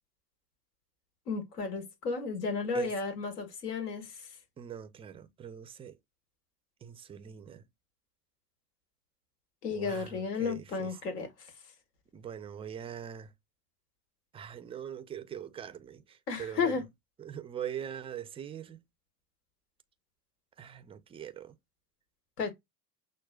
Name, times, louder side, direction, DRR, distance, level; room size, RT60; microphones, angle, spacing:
voice 1, 1.3-4.3 9.6-11.3 16.3-16.8 22.4-22.5, left 5 dB, 80° left, 1.5 m, -33 dB
voice 2, 4.6-6.0 6.8-7.6 9.7-10.9 12.1-13.3 14.3-16.7 17.2-18.8 20.6-21.5, right 9 dB, 15° right, 0.3 m, -42 dB
6.0 x 2.2 x 2.2 m
hypercardioid pair, 80°, 47 cm